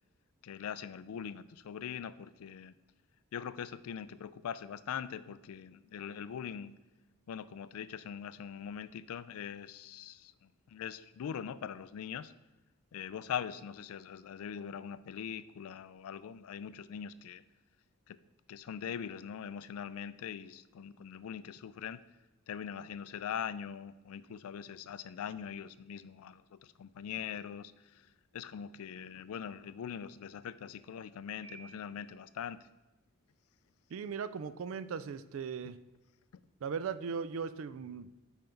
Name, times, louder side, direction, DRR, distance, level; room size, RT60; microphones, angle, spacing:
voice 1, 0.4-2.7 3.3-6.7 7.3-12.3 12.9-17.4 18.1-18.2 18.5-22.0 22.5-28.1 28.3-32.7, left 8 dB, 70° left, 15 dB, 0.3 m, -42 dB
Piano, 31.4-32.4, right 5 dB, 15° right, 1.5 m, -55 dB
voice 2, 33.9-35.8 36.6-38.3, right 6 dB, 60° right, 13 dB, 0.3 m, -38 dB
5.6 x 4.5 x 5.2 m, 1.0 s
head